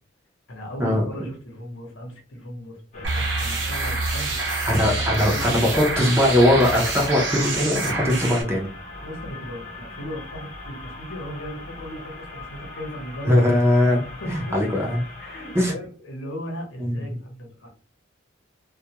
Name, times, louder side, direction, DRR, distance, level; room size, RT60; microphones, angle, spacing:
voice 1, 0.5-6.0 7.9-8.2 8.9-13.6 14.1-14.7 15.2-17.7, equal, 75° left, 1 dB, 0.8 m, -37 dB
sound 1, 2.9-15.7, left 2 dB, 35° left, 0.7 m, -40 dB
sound 2, 3.0-8.4, right 3 dB, 65° right, 0.8 m, -27 dB
voice 2, 4.7-8.7 13.3-15.0 15.5-15.7 16.8-17.0, left 1 dB, 15° right, 0 dB, 0.5 m, -20 dB
2.2 x 2.1 x 2.8 m, 0.38 s
head